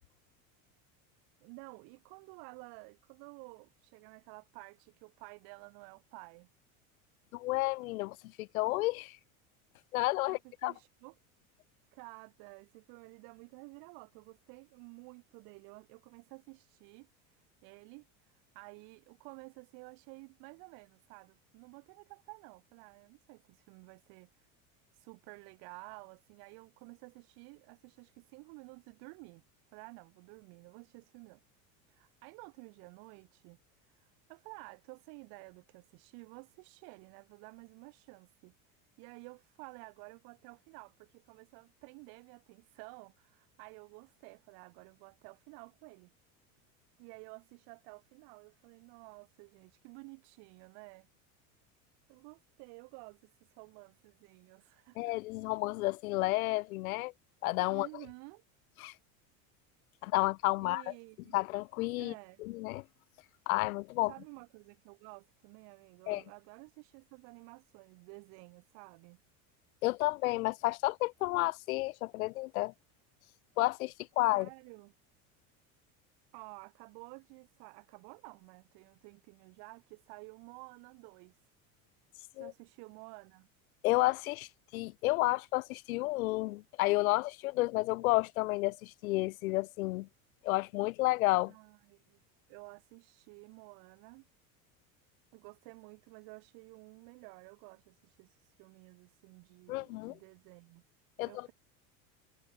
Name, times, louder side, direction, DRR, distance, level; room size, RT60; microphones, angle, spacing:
voice 1, 1.4-6.5 10.2-11.2 11.9-24.5 24.9-29.4 29.7-31.4 31.9-38.5 39.0-46.1 47.0-51.1 52.1-55.2 57.7-58.4 60.6-61.4 62.0-62.4 64.0-69.2 74.3-74.9 76.3-81.4 82.3-83.5 91.5-92.2 92.5-94.3 95.3-100.8 101.2-101.5, right 35 dB, 65° right, 4.2 m, -52 dB
voice 2, 7.3-9.2 9.9-10.7 55.0-57.1 57.4-57.9 58.8-58.9 60.0-60.9 61.3-62.1 62.4-62.8 63.5-64.1 66.1-66.2 69.8-72.7 73.6-74.5 82.4-82.5 83.8-90.1 90.4-91.5 99.7-100.2 101.2-101.5, left 20 dB, 80° left, 1.3 m, -31 dB
supercardioid pair, 105°, 41 cm